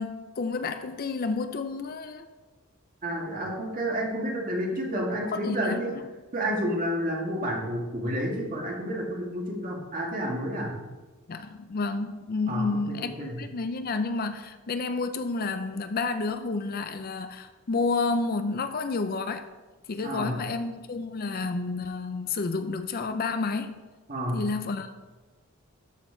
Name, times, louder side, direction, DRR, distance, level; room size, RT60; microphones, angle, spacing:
voice 1, 0.0-2.3 5.3-5.8 11.3-19.5 19.9-23.8 24.3-24.9, left 3 dB, 45° left, 0.4 m, -30 dB
voice 2, 3.0-5.9 6.3-10.7 12.5-13.4 20.0-20.4 24.1-24.4, equal, 40° right, 1.7 m, -30 dB
13.0 x 4.4 x 4.4 m
head